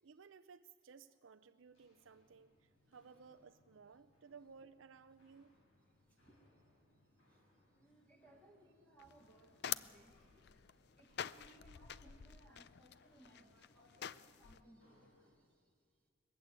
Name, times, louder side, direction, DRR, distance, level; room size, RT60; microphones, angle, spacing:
voice 1, 0.0-5.5, right 5 dB, 70° right, 10 dB, 0.5 m, -59 dB
Walk footsteps, 1.6-15.4, left 1 dB, 70° left, 7.4 m, -72 dB
voice 2, 5.9-6.4 7.3-15.8, right 1 dB, 5° left, -1 dB, 1.9 m, -66 dB
sound 1, 9.0-14.6, left 9 dB, 55° left, 0.5 m, -47 dB
21.0 x 15.0 x 8.8 m, 2.2 s
head